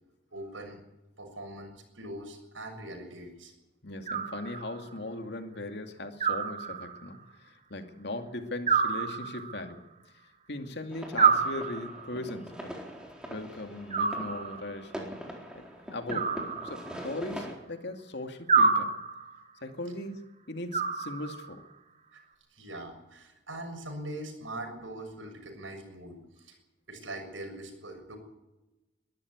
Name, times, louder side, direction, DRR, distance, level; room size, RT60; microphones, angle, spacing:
voice 1, 0.3-0.8 1.2-3.5 22.1-22.2 22.5-26.5 26.9-28.2, right 1 dB, 85° right, 4 dB, 6.8 m, -42 dB
voice 2, 3.8-9.9 10.5-12.7 13.3-15.1 15.5-16.3 16.6-18.9 19.6-21.6, left 2 dB, 60° left, 6 dB, 2.5 m, -39 dB
Animal, 4.1-4.9 6.2-7.2 8.7-9.7 11.2-12.2 13.9-14.8 16.1-17.2 18.5-19.4 20.7-21.6, right 5 dB, 35° right, 2.6 m, -28 dB
sound 1, 10.9-17.5, equal, 5° right, 4.0 m, -42 dB
22.5 x 13.5 x 9.7 m, 0.98 s
head